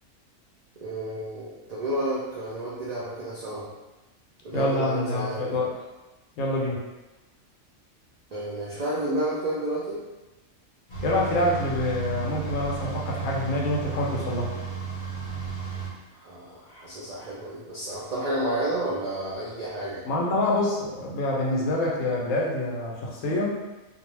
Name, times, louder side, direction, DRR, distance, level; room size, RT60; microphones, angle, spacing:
voice 1, 0.8-3.7 4.4-5.6 8.3-10.0 16.1-20.0, right 1 dB, 75° right, -8 dB, 0.3 m, -31 dB
voice 2, 4.5-5.7 6.4-6.8 11.0-14.5 20.1-23.6, left 1 dB, 75° left, -3 dB, 1.0 m, -26 dB
sound 1, 10.9-15.9, right 5 dB, 45° left, 0.8 m, -34 dB
2.4 x 2.1 x 3.1 m, 1.1 s
omnidirectional pair, 1.4 m